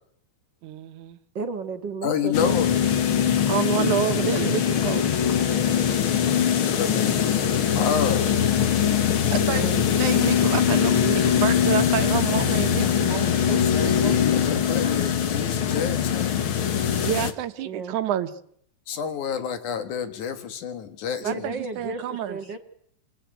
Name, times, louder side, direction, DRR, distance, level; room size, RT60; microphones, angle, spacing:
voice 1, 0.6-1.2 3.5-5.1 9.3-9.7 9.9-14.2 17.0-18.3 21.2-22.4, right 11 dB, 80° right, 10 dB, 2.6 m, -29 dB
voice 2, 1.4-2.7 9.6-10.0 17.7-18.0 21.2-22.0 22.3-22.6, right 4 dB, 45° right, 7 dB, 2.0 m, -33 dB
voice 3, 2.0-2.8 6.6-8.2 13.5-16.4 18.9-21.5, left 7 dB, 85° left, 9 dB, 3.3 m, -29 dB
sound 1, 2.3-17.3, left 8 dB, 50° left, 2.0 m, -22 dB
28.0 x 17.5 x 9.2 m, 0.70 s
omnidirectional pair, 3.4 m